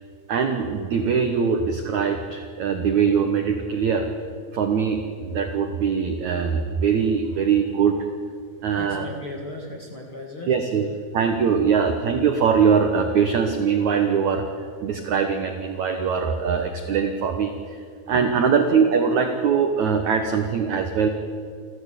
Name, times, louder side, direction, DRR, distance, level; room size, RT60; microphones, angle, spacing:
voice 1, 0.3-4.1 4.5-8.0 8.6-9.1 10.5-10.9 11.1-17.5 18.1-21.1, right 6 dB, 70° right, 6 dB, 1.7 m, -22 dB
voice 2, 8.8-10.5 18.1-18.4, left 2 dB, 45° left, 1 dB, 1.8 m, -36 dB
29.0 x 13.0 x 8.2 m, 2.2 s
omnidirectional pair, 5.2 m